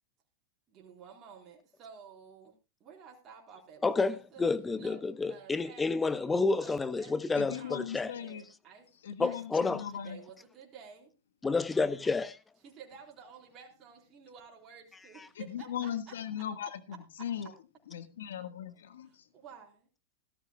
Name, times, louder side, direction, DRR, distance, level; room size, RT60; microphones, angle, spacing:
voice 1, 0.7-2.5 2.8-4.5 4.8-6.2 6.6-8.9 9.2-11.1 12.6-15.9 16.6-16.7 19.3-19.9, right 6 dB, 35° right, 4.2 m, -53 dB
voice 2, 3.8-8.1 9.2-9.8 11.4-12.4 14.9-15.3, left 3 dB, 15° left, 0.9 m, -30 dB
voice 3, 7.3-8.4 9.0-10.2 15.3-17.5 17.9-19.3, left 9 dB, 80° left, 1.6 m, -39 dB
17.5 x 13.5 x 2.3 m
hypercardioid pair, 110°, 0 cm